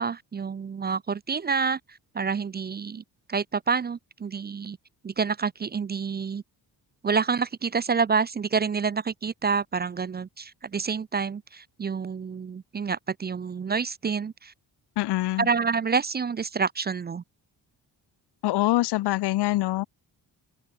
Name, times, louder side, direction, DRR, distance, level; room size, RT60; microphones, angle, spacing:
voice 1, 0.0-3.0 3.3-4.8 5.0-6.4 7.0-14.5 15.4-17.2, right 5 dB, 25° right, 0.4 m, -28 dB
voice 2, 15.0-15.5 18.4-19.8, left 17 dB, 75° left, 0.5 m, -24 dB
cardioid pair, 80°, 41 cm